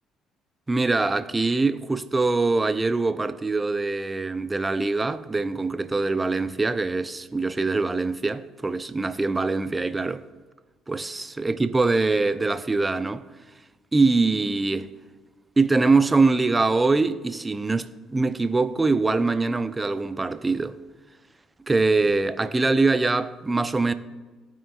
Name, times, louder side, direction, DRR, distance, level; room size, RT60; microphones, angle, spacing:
voice 1, 0.7-10.2 10.9-13.2 13.9-14.9 15.6-20.8 21.7-23.9, right 3 dB, 20° right, 0.6 m, -23 dB
18.0 x 6.1 x 2.4 m
hypercardioid pair, 50°, 0 cm